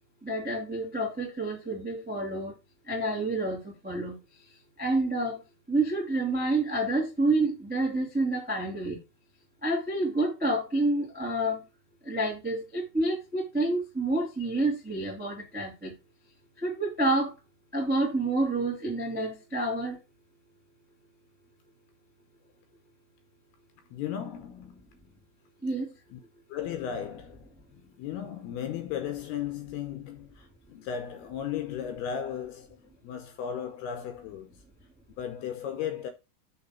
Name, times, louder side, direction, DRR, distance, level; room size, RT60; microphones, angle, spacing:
voice 1, 0.2-2.5 2.9-4.1 4.8-5.4 5.7-9.0 9.6-11.6 12.0-15.9 16.6-17.3 17.7-20.0 25.6-25.9, right 2 dB, 15° right, 0.4 m, -28 dB
voice 2, 23.9-25.0 26.1-26.2 26.5-34.5 35.2-36.1, left 9 dB, 75° left, 2.5 m, -36 dB
6.4 x 6.4 x 4.2 m
omnidirectional pair, 5.3 m